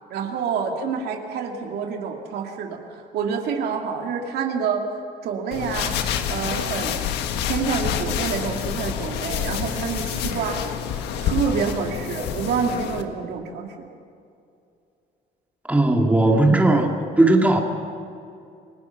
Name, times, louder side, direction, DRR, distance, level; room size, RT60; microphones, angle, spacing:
voice 1, 0.1-4.8 5.2-6.0 6.3-7.0 7.5-13.9, right 6 dB, 75° right, 2 dB, 2.7 m, -27 dB
sound 1, 5.5-13.0, left 9 dB, 85° left, 1.6 m, -27 dB
voice 2, 15.7-17.6, right 2 dB, 10° right, 1 dB, 2.8 m, -17 dB
28.5 x 18.0 x 6.0 m, 2.5 s
cardioid pair, 110°, 17 cm